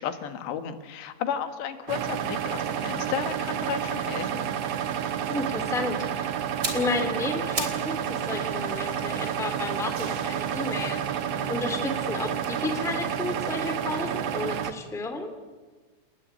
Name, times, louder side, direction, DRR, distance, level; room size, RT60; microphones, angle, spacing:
voice 1, 0.0-4.5, left 8 dB, 90° left, 9 dB, 3.8 m, -33 dB
sound 1, 1.9-14.7, right 9 dB, 70° right, 1.5 m, -30 dB
voice 2, 5.3-6.3 6.7-11.0 11.5-15.3, left 3 dB, ahead, 7 dB, 1.8 m, -32 dB
sound 2, 6.3-13.9, right 2 dB, 40° right, 5.0 m, -48 dB
sound 3, 6.4-7.9 8.2-11.5 12.3-14.4 14.6-14.8, right 2 dB, 20° right, 3.2 m, -39 dB
30.0 x 19.0 x 9.1 m, 1.3 s
omnidirectional pair, 4.8 m